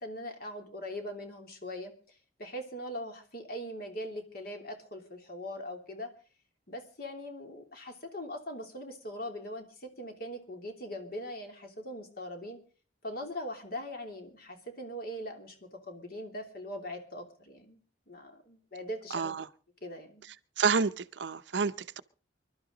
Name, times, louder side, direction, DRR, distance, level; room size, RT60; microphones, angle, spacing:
voice 1, 0.0-6.1 6.7-12.6 13.0-19.3 19.8-20.2, equal, 55° left, 3.1 m, -41 dB
voice 2, 19.1-19.5 20.6-22.0, right 5 dB, 75° right, 0.7 m, -29 dB
25.0 x 12.0 x 3.9 m
head